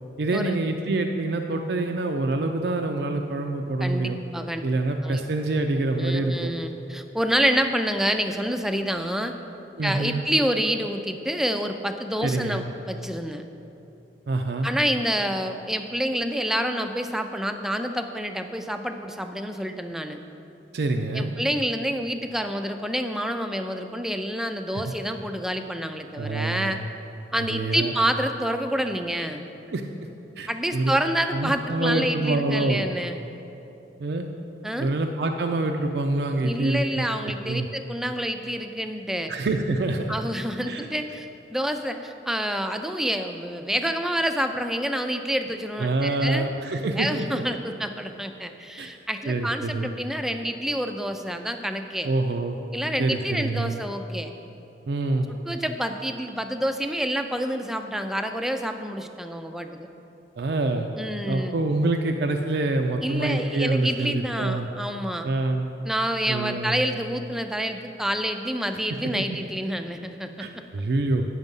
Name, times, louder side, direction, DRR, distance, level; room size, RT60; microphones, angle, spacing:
voice 1, 0.2-4.2 4.6-6.5 9.8-10.2 12.2-12.7 14.3-14.7 20.7-21.4 24.7-24.8 26.2-26.8 27.4-27.9 29.7-29.8 30.4-30.9 31.3-32.9 34.0-34.3 34.8-37.0 37.5-37.7 39.3-40.2 40.6-40.9 45.8-47.4 48.8-48.9 49.3-49.9 52.0-52.6 53.0-53.8 54.9-55.3 60.4-60.9 61.3-64.7 65.2-65.7 66.3-66.8 69.1-69.2 70.4-71.2, right 2 dB, 65° right, 4 dB, 0.4 m, -26 dB
voice 2, 3.8-4.6 5.0-5.2 6.0-9.3 9.8-13.4 14.6-20.2 21.1-26.8 27.3-29.4 30.5-33.2 34.6-34.9 36.4-39.3 40.1-46.5 47.0-52.1 52.7-54.3 55.3-59.9 61.0-61.6 63.0-65.3 65.8-70.5, equal, ahead, 6 dB, 0.4 m, -28 dB
9.3 x 6.2 x 5.3 m, 2.9 s
head